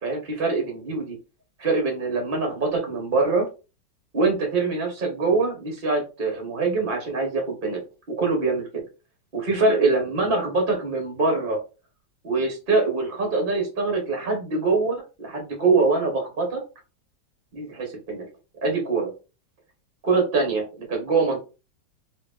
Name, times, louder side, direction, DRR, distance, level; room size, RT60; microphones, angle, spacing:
voice 1, 0.0-1.2 1.6-3.5 4.1-7.8 8.1-8.6 9.3-11.6 12.2-16.6 17.5-18.3 18.6-19.1 20.0-21.4, right 3 dB, 35° right, 2 dB, 0.9 m, -24 dB
5.0 x 2.8 x 2.3 m, 0.31 s
omnidirectional pair, 2.0 m